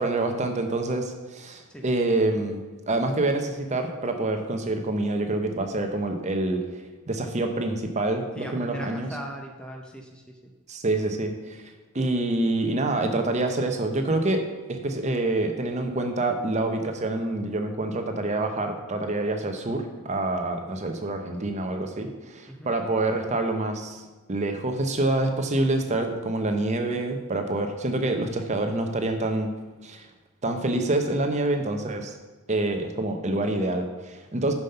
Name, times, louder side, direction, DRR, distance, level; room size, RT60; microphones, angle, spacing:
voice 1, 0.0-9.1 10.7-11.6 11.9-14.4 14.7-29.5 29.8-30.1 30.4-32.1 32.5-34.5, right 2 dB, 30° right, 5 dB, 0.7 m, -27 dB
voice 2, 8.3-10.5 22.5-22.7, equal, 5° left, 2 dB, 0.6 m, -39 dB
7.1 x 5.6 x 5.5 m, 1.2 s
head